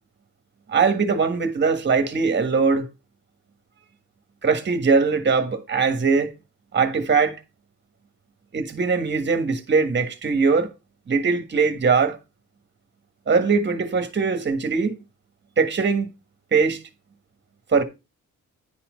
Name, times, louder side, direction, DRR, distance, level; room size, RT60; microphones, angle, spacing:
voice 1, 0.7-2.9 4.4-6.3 6.7-7.4 8.5-10.7 11.1-12.2 13.3-15.0 15.6-16.1 16.5-16.8 17.7-17.8, right 5 dB, 35° right, 1.5 m, -21 dB
10.5 x 4.4 x 5.1 m
wide cardioid pair, 135°, 30 cm